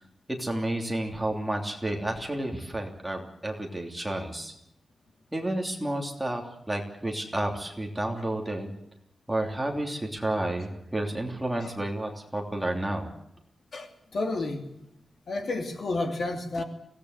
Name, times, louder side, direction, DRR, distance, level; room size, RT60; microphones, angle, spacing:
voice 1, 0.3-4.5 5.3-8.7 9.3-13.1, right 1 dB, 5° right, 1 dB, 3.1 m, -31 dB
voice 2, 14.1-14.6 15.3-16.6, left 2 dB, 55° left, 5 dB, 2.8 m, -30 dB
24.0 x 18.0 x 8.2 m, 0.78 s
wide cardioid pair, 165°, 0 cm